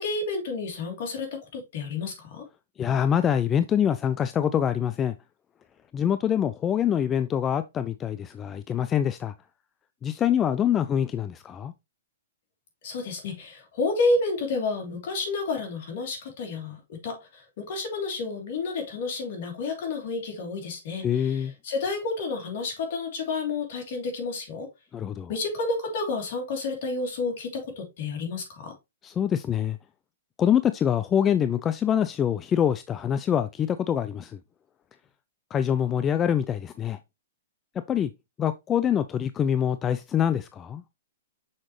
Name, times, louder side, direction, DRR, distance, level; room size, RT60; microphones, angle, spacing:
voice 1, 0.0-2.4 12.8-24.7 25.3-28.7, left 3 dB, 50° left, 3.0 m, -30 dB
voice 2, 2.8-5.1 5.9-9.3 10.0-11.7 21.0-21.5 24.9-25.3 29.0-29.8 30.4-34.4 35.5-37.0 37.9-38.1 38.4-40.8, left 9 dB, 20° left, 0.3 m, -25 dB
6.4 x 4.9 x 3.1 m
hypercardioid pair, 150°, 0 cm